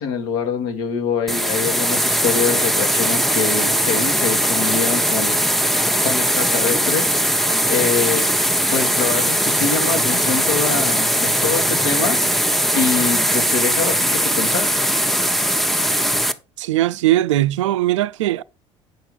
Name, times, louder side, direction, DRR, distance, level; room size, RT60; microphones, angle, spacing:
voice 1, 0.0-5.6 6.0-7.2 7.7-8.3 8.7-14.8, left 6 dB, 65° left, 2.0 m, -24 dB
sound 1, 1.3-16.3, equal, ahead, 0.9 m, -19 dB
voice 2, 16.6-18.4, right 14 dB, 75° right, 0.4 m, -19 dB
9.0 x 6.1 x 4.8 m
figure-of-eight pair, 55°, 16 cm